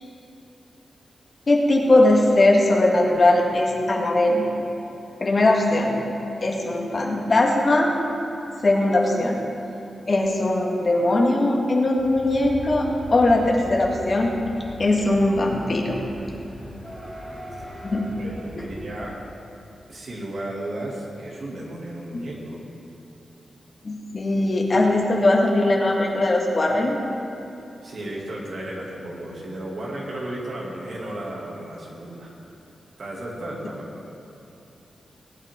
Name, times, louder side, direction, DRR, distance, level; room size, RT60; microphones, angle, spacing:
voice 1, 1.5-4.5 5.2-6.0 6.4-8.0 8.6-9.4 10.1-14.3 14.8-16.0 17.8-18.1 18.5-18.7 22.1-22.2 23.8-27.0, left 2 dB, 45° left, 0 dB, 1.8 m, -20 dB
sound 1, 12.0-19.1, equal, 15° right, 3.4 m, -39 dB
voice 2, 18.2-19.1 19.9-22.6 27.8-32.3 33.0-34.1, right 1 dB, 65° right, -3 dB, 2.6 m, -34 dB
19.5 x 8.9 x 3.8 m, 2.9 s
cardioid pair, 85°, 0 cm